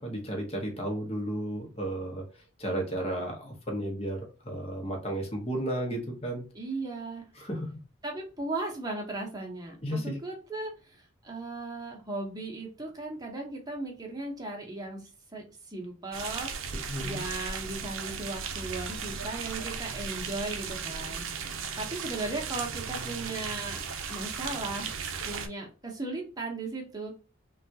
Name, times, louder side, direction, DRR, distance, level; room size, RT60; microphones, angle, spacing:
voice 1, 0.0-2.2 2.6-6.4 7.3-7.7 9.8-10.2 16.9-17.2, right 1 dB, 30° left, 2 dB, 0.9 m, -33 dB
voice 2, 6.5-7.2 8.0-10.7 11.2-15.0 15.3-16.5 17.0-21.2 21.8-23.8 24.1-24.9 25.2-27.2, right 2 dB, 20° right, 0 dB, 0.8 m, -36 dB
sound 1, 16.1-25.5, right 6 dB, 70° right, 0.5 m, -36 dB
3.5 x 2.3 x 2.7 m, 0.33 s
head